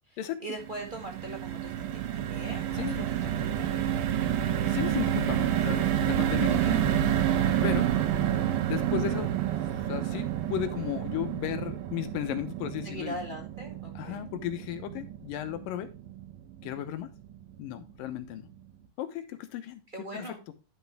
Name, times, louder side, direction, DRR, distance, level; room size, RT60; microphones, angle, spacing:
voice 1, 0.1-4.5 6.6-6.8 12.8-14.2 19.9-20.4, right 1 dB, 25° right, 1 dB, 1.2 m, -42 dB
sound 1, 0.6-16.9 17.3-17.4 17.7-17.9, right 10 dB, 85° right, 2.7 m, -29 dB
voice 2, 2.7-3.1 4.7-6.9 7.6-7.9 8.7-9.3 9.8-13.2 14.0-15.9 16.6-17.1 17.6-18.5 19.0-20.4, left 12 dB, 75° left, 10 dB, 2.6 m, -35 dB
11.5 x 5.9 x 3.3 m, 0.30 s
omnidirectional pair, 4.0 m